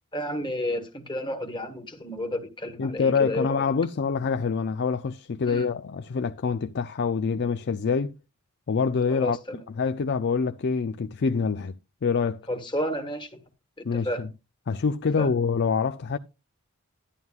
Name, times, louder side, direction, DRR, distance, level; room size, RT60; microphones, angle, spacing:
voice 1, 0.1-3.6 5.5-5.7 9.1-9.6 12.5-13.4 13.8-14.2 15.2-15.3, equal, 20° left, 1.5 m, -31 dB
voice 2, 2.8-8.1 8.7-9.4 9.8-12.4 13.8-14.3 14.7-16.2, left 5 dB, 50° left, 0.4 m, -26 dB
11.5 x 11.0 x 2.4 m
head